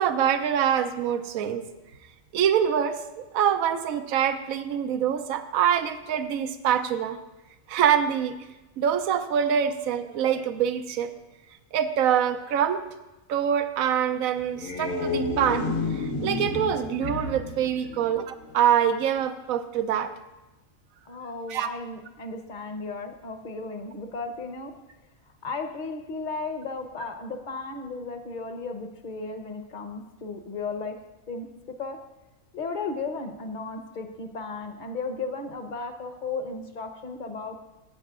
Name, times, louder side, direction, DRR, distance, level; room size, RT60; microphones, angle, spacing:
voice 1, 0.0-1.6 2.3-7.2 7.7-8.4 8.8-11.1 11.7-12.8 13.3-20.1 21.5-21.7, right 9 dB, 80° right, 9 dB, 1.1 m, -25 dB
sound 1, 14.4-18.6, left 3 dB, 75° left, 1.7 m, -31 dB
voice 2, 21.1-24.7 25.4-31.0 31.3-31.5 31.8-32.0 32.5-37.6, left 3 dB, 40° left, 5 dB, 1.0 m, -35 dB
17.5 x 9.0 x 2.5 m, 1.0 s
omnidirectional pair, 1.5 m